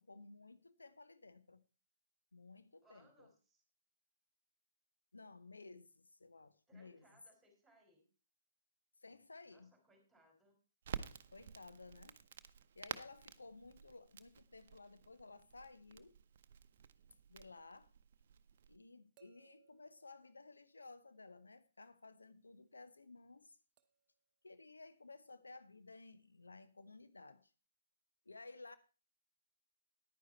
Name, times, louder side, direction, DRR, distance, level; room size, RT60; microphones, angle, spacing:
voice 1, 0.0-1.6 2.3-3.3 5.1-7.1 9.0-9.7 11.3-12.2 12.7-16.2 17.3-17.9 18.7-23.6 24.4-27.5 28.3-28.8, left 3 dB, 75° left, 0.7 m, -56 dB
voice 2, 2.8-3.6 6.7-8.1 9.4-10.6, right 1 dB, 5° right, 3.8 m, -69 dB
Crackle, 10.8-18.8, right 8 dB, 50° right, 0.7 m, -51 dB
sound 1, 17.8-17.9 19.2-21.2 23.8-24.2 25.3-25.4, right 9 dB, 25° right, 1.0 m, -72 dB
10.5 x 9.4 x 4.3 m
figure-of-eight pair, 125°, 0 cm